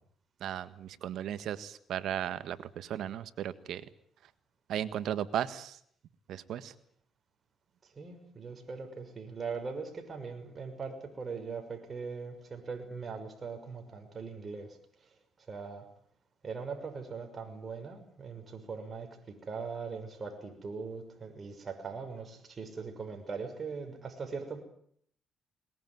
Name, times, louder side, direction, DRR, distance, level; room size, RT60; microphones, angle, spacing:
voice 1, 0.4-3.8 4.7-5.7 6.3-6.7, right 10 dB, 75° right, 13 dB, 1.6 m, -35 dB
voice 2, 7.8-15.1 15.4-15.8 16.4-24.6, right 5 dB, 40° right, 5 dB, 6.2 m, -41 dB
21.5 x 20.5 x 9.4 m, 0.65 s
cardioid pair, 90°, 0 cm